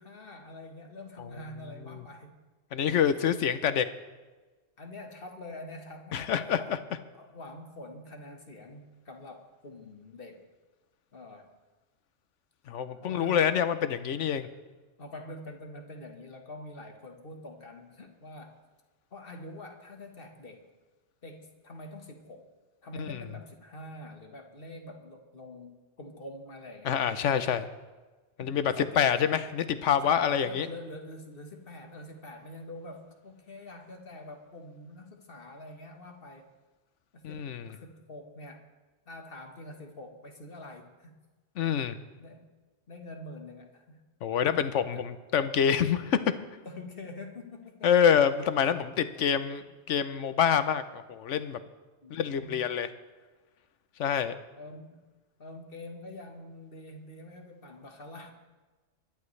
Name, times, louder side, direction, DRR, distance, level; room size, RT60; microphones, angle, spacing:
voice 1, 0.0-2.4 4.8-6.7 7.1-10.5 11.1-11.5 13.0-13.5 15.0-18.6 19.1-20.7 21.2-22.5 22.8-27.0 28.4-29.3 30.0-36.5 37.1-38.7 39.1-41.2 41.9-42.5 42.9-44.0 44.5-45.2 46.6-47.9 52.0-52.7 54.6-55.0 55.4-58.3, left 1 dB, 50° left, 4 dB, 1.6 m, -46 dB
voice 2, 2.7-3.9 6.1-6.8 12.7-14.5 23.0-23.2 26.8-27.7 28.4-30.7 37.2-37.7 41.6-42.0 44.2-46.2 47.8-51.6 52.1-52.9 54.0-54.3, left 8 dB, 85° left, 12 dB, 1.1 m, -26 dB
23.5 x 11.5 x 3.3 m, 1.3 s
omnidirectional pair, 1.2 m